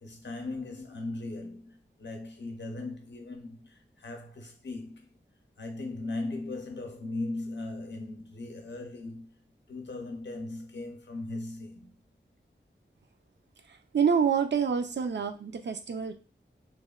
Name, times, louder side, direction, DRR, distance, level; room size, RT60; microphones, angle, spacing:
voice 1, 0.0-5.1 5.6-9.3 9.7-11.9, left 2 dB, 60° left, 0.6 m, -38 dB
voice 2, 13.9-16.1, right 6 dB, 60° right, 0.4 m, -27 dB
3.0 x 2.1 x 2.3 m
wide cardioid pair, 55°, 21 cm